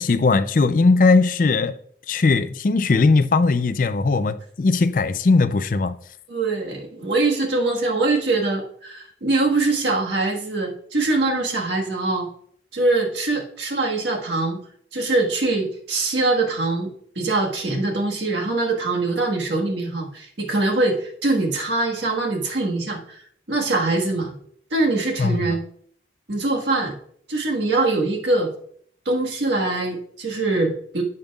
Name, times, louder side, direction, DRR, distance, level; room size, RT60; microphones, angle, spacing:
voice 1, 0.0-1.8 2.1-6.0 25.2-25.5, left 3 dB, 50° left, 0.4 m, -19 dB
voice 2, 6.3-12.3 12.7-14.6 14.9-23.2 23.5-24.3 24.7-25.6 26.3-26.9 27.3-28.5 29.0-31.0, right 2 dB, 85° right, 1.5 m, -23 dB
14.0 x 5.2 x 2.4 m
head